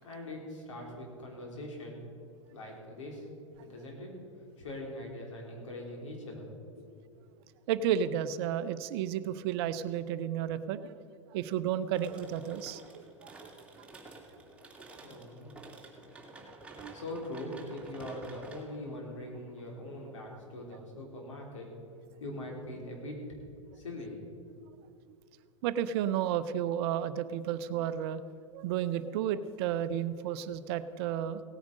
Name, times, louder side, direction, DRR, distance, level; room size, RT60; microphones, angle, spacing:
voice 1, 0.0-2.0 2.5-3.3 3.6-4.2 4.6-6.5 6.8-6.9 15.0-15.5 16.9-21.7 22.2-23.2 23.7-24.5, left 1 dB, 75° left, -1 dB, 3.8 m, -42 dB
voice 2, 7.7-11.0 11.3-13.3 16.8-16.9 25.6-28.2 28.5-31.4, right 10 dB, 50° right, 13 dB, 0.7 m, -32 dB
sound 1, 12.0-20.6, right 2 dB, 5° right, 2.3 m, -51 dB
17.5 x 9.5 x 5.3 m, 2.5 s
hypercardioid pair, 95°, 16 cm